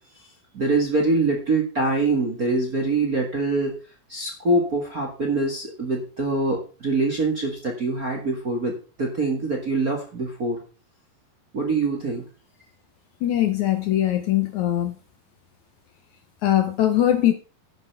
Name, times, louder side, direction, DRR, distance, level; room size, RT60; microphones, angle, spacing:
voice 1, 0.5-3.7 4.1-10.6 11.5-12.2, right 3 dB, 35° right, 1.5 m, -24 dB
voice 2, 13.2-14.9 16.4-17.3, left 12 dB, 70° left, 1.9 m, -21 dB
10.0 x 7.1 x 5.5 m
omnidirectional pair, 4.2 m